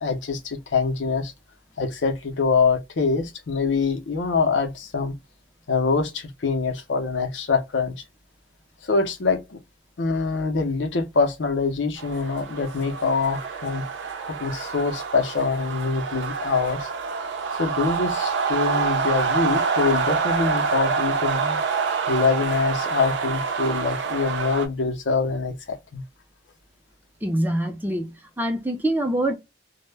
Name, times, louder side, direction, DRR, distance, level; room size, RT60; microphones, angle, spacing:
voice 1, 0.0-1.3 1.8-5.1 5.7-7.9 8.8-9.6 10.0-13.8 14.2-16.9 17.6-21.6 22.1-26.0, left 4 dB, 80° left, 0.6 m, -24 dB
sound 1, 12.0-24.7, right 5 dB, 80° right, 0.5 m, -26 dB
voice 2, 27.2-29.3, right 1 dB, 10° right, 0.5 m, -25 dB
2.1 x 2.0 x 3.2 m
head